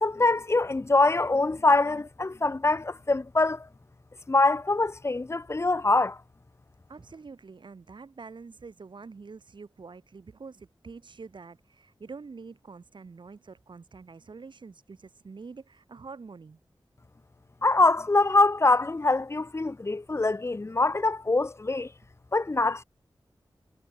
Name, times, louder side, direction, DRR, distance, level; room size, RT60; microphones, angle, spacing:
voice 1, 0.0-3.7 4.3-6.2 17.6-21.9 22.3-22.8, left 3 dB, 35° left, 0.9 m, -24 dB
voice 2, 6.9-16.6, right 4 dB, 70° right, 2.9 m, -46 dB
wide cardioid pair, 80°, 8 cm